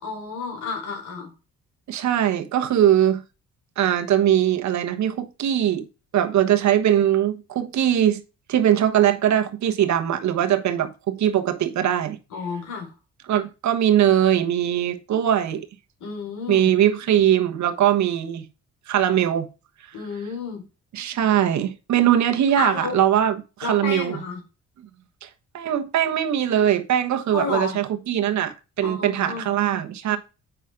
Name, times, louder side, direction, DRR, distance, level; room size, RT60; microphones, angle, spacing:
voice 1, 0.0-1.3 12.3-12.9 16.0-16.7 19.9-20.6 22.6-23.0 23.6-24.4 27.3-27.8 28.8-29.5, left 5 dB, 80° left, 4.7 m, -31 dB
voice 2, 1.9-3.2 3.8-5.9 6.1-8.2 8.5-12.2 13.3-15.7 16.5-18.4 18.9-19.5 20.9-24.2 25.2-25.3 25.5-30.2, right 10 dB, 65° right, 1.2 m, -21 dB
8.2 x 5.8 x 3.7 m
cardioid pair, 90°, 30 cm